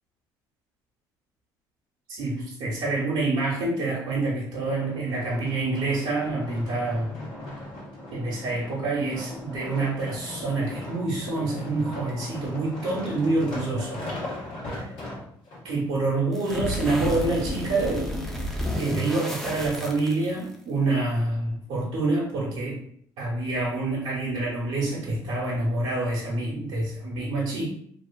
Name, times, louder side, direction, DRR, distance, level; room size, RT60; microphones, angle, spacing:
voice 1, 2.1-7.2 8.1-14.0 14.7-14.9 15.6-18.2 18.5-22.8 23.2-27.7, right 2 dB, 75° right, -6 dB, 0.7 m, -27 dB
sound 1, 4.6-15.6 16.3-16.4, left 1 dB, 70° left, 1.1 m, -38 dB
sound 2, 16.3-20.5, left 1 dB, 5° left, 0.5 m, -31 dB
2.6 x 2.4 x 2.2 m, 0.63 s
supercardioid pair, 75°, 9 cm